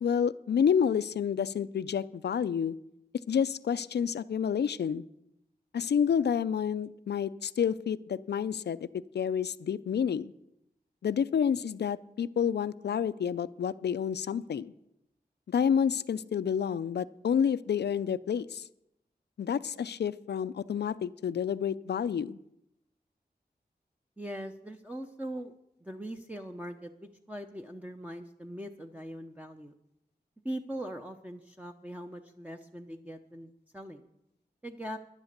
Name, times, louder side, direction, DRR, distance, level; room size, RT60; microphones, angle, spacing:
voice 1, 0.0-2.8 3.3-5.0 5.7-8.9 9.1-10.3 11.0-14.7 15.5-18.6 19.4-22.4, left 7 dB, 90° left, 16 dB, 0.4 m, -29 dB
voice 2, 24.2-25.5 25.8-29.7 30.4-34.0 34.6-35.0, right 1 dB, 10° right, 2 dB, 0.7 m, -41 dB
10.5 x 10.5 x 6.6 m, 0.83 s
wide cardioid pair, 60°, 17 cm